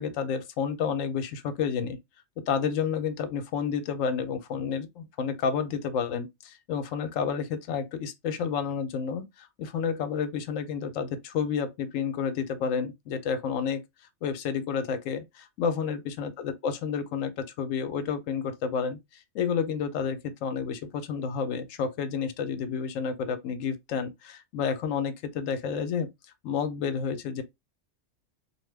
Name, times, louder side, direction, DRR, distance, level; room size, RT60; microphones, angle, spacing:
voice 1, 0.0-2.0 2.5-13.8 14.2-19.0 19.3-26.1 26.4-27.4, left 6 dB, 85° left, 1.0 m, -30 dB
2.7 x 2.2 x 3.2 m
omnidirectional pair, 1.3 m